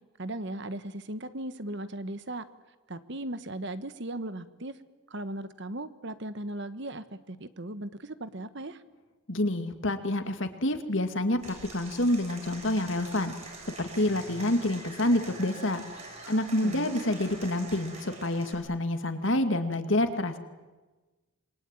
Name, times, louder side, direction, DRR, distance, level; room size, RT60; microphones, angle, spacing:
voice 1, 0.2-2.5 2.9-4.8 5.1-8.8 16.6-17.0, right 1 dB, 55° right, 13 dB, 1.3 m, -37 dB
voice 2, 9.3-13.3 13.8-15.8 16.3-20.4, left 1 dB, 60° left, 8 dB, 2.3 m, -28 dB
Applause / Crowd, 11.4-18.5, right 3 dB, 30° right, 7.3 m, -45 dB
27.0 x 23.5 x 9.2 m, 1.2 s
head